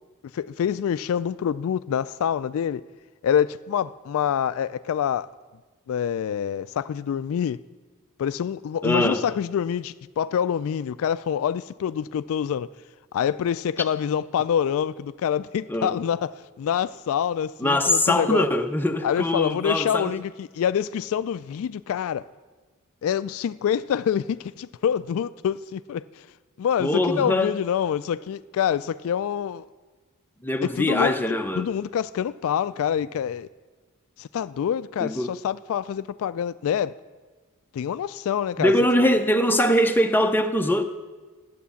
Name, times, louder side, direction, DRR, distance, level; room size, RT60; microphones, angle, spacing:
voice 1, 0.3-2.8 3.2-5.3 5.9-7.6 8.2-12.7 13.1-18.5 19.0-22.2 23.0-26.2 26.6-29.6 30.6-31.2 31.6-33.5 34.2-37.0 37.7-38.7, left 8 dB, 65° left, 0.3 m, -26 dB
voice 2, 8.8-9.2 15.7-16.0 17.6-20.1 26.8-27.6 30.4-31.7 35.0-35.3 38.6-40.8, left 1 dB, 10° left, 0.6 m, -22 dB
12.5 x 9.3 x 7.0 m
head